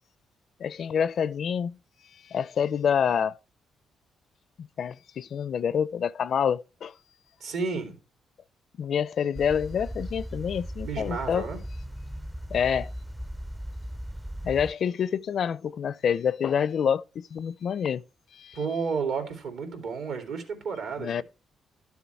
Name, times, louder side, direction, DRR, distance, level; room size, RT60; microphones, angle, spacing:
voice 1, 0.6-1.8 2.3-3.4 4.6-6.9 8.8-11.5 12.5-12.9 14.4-18.0 18.3-18.6 21.0-21.2, left 7 dB, 60° left, 0.5 m, -27 dB
voice 2, 7.4-8.0 10.8-11.6 18.5-21.2, right 5 dB, 80° right, 3.3 m, -32 dB
sound 1, 9.4-14.7, equal, 10° right, 0.5 m, -37 dB
12.0 x 7.1 x 4.6 m
cardioid pair, 90°, 0 cm